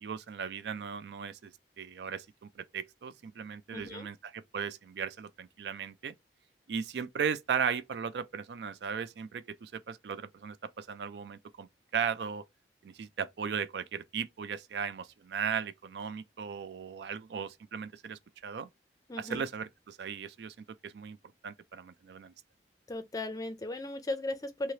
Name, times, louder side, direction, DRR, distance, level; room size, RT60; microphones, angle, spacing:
voice 1, 0.0-6.1 6.7-12.4 12.8-18.7 19.2-20.5 20.8-21.2 21.4-22.3, right 7 dB, 70° right, 0.4 m, -37 dB
voice 2, 3.7-4.1 19.1-19.5 22.9-24.7, left 2 dB, 20° left, 0.5 m, -36 dB
2.8 x 2.8 x 3.1 m
head